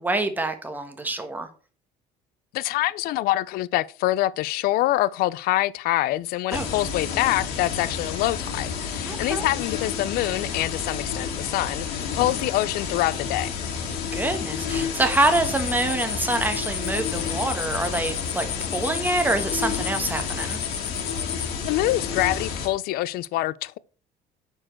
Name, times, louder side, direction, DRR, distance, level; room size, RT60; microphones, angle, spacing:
voice 1, 0.0-1.5 6.5-6.7 9.1-9.4 14.1-20.6, right 2 dB, 10° right, 1.3 m, -26 dB
voice 2, 2.5-13.5 21.6-23.8, left 16 dB, 70° left, 0.4 m, -25 dB
sound 1, 6.5-22.7, left 6 dB, 85° left, 2.5 m, -30 dB
sound 2, 15.1-21.5, left 10 dB, 55° left, 1.3 m, -33 dB
8.7 x 4.6 x 4.5 m
cardioid pair, 115°, 16 cm